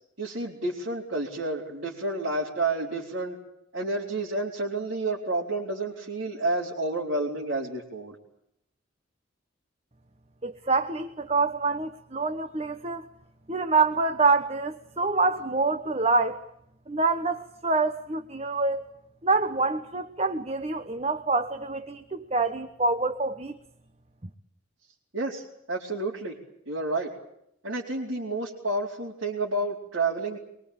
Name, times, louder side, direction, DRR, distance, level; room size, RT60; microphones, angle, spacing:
voice 1, 0.2-3.4 3.7-8.1 25.1-26.4 26.7-27.1 27.6-30.4, right 2 dB, 75° right, 4.3 m, -30 dB
voice 2, 10.4-13.1 13.5-16.4 16.9-18.9 19.2-23.6, right 3 dB, 30° right, 1.0 m, -26 dB
24.0 x 23.0 x 8.9 m
head